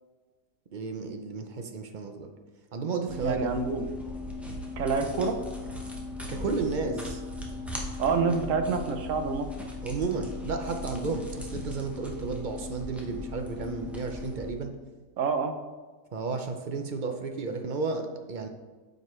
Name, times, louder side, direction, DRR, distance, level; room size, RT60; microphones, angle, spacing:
voice 1, 0.7-2.3 2.7-3.5 6.3-7.2 9.8-14.7 16.1-18.5, right 4 dB, 50° right, 5 dB, 0.6 m, -32 dB
sound 1, 3.1-14.5, left 2 dB, ahead, 0.8 m, -38 dB
voice 2, 3.2-3.9 4.8-5.4 8.0-9.5 15.2-15.5, right 4 dB, 70° right, 7 dB, 1.0 m, -27 dB
9.0 x 5.3 x 3.2 m, 1.3 s
omnidirectional pair, 1.4 m